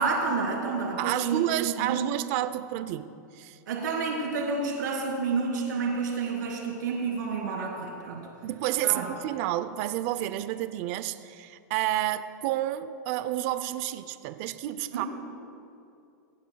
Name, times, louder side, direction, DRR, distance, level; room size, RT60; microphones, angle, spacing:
voice 1, 0.0-2.1 3.7-8.3 8.8-9.1 14.9-15.1, right 4 dB, 85° right, -2 dB, 3.6 m, -29 dB
voice 2, 1.0-3.6 8.4-15.1, right 13 dB, 45° right, 13 dB, 0.6 m, -30 dB
28.5 x 10.5 x 2.3 m, 2.5 s
supercardioid pair, 150°, 10 cm